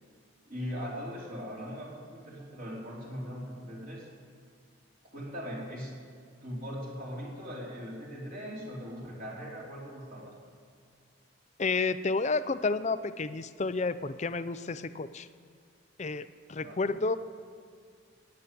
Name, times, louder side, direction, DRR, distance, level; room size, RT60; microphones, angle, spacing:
voice 1, 0.5-4.1 5.1-6.0 6.4-10.3 16.5-16.9, equal, 40° right, -4 dB, 4.1 m, -40 dB
voice 2, 11.6-15.3 16.0-17.2, left 3 dB, 35° left, 13 dB, 0.5 m, -31 dB
14.5 x 9.6 x 8.5 m, 2.2 s
head